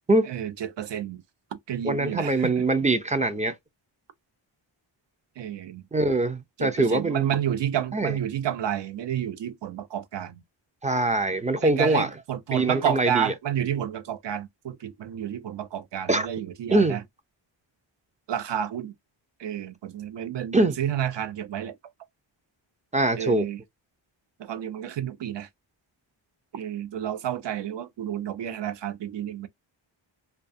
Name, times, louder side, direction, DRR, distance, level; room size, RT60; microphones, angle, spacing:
voice 1, 0.3-1.2 1.5-2.5 5.4-5.8 6.6-10.4 11.6-17.0 18.3-18.9 19.4-21.7 23.2-23.6 24.4-25.5 26.5-29.5, right 10 dB, 60° right, 0.6 m, -30 dB
voice 2, 1.8-3.5 5.9-7.3 7.9-8.1 10.8-12.1 12.5-13.3 16.1-16.3 16.7-17.0 20.5-20.7 22.9-23.4, right 2 dB, 15° right, 0.4 m, -23 dB
2.4 x 2.3 x 2.5 m
wide cardioid pair, 105°, 48 cm